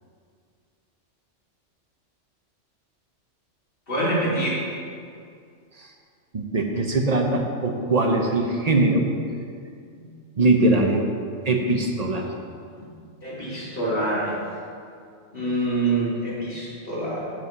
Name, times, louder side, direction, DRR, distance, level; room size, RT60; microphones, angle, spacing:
voice 1, 3.9-4.6 13.2-14.3 15.3-17.2, right 2 dB, 45° left, -7 dB, 2.6 m, -25 dB
voice 2, 6.3-9.1 10.4-11.1 11.5-12.3, right 2 dB, 40° right, 2 dB, 0.7 m, -21 dB
7.4 x 5.4 x 6.6 m, 2.3 s
omnidirectional pair, 1.3 m